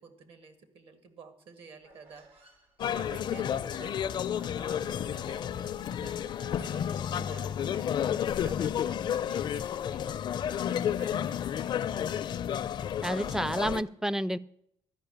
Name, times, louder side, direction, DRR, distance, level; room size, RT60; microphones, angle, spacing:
voice 1, 0.0-11.9 13.1-13.5, right 5 dB, 65° right, 10 dB, 1.7 m, -51 dB
Human voice, 1.8-8.9, right 3 dB, 85° right, 2.4 m, -59 dB
sound 1, 2.8-13.8, left 9 dB, 55° left, 0.5 m, -31 dB
voice 2, 13.0-14.4, right 1 dB, 5° right, 19 dB, 0.3 m, -30 dB
12.5 x 5.5 x 8.6 m, 0.74 s
cardioid pair, 140°, 10 cm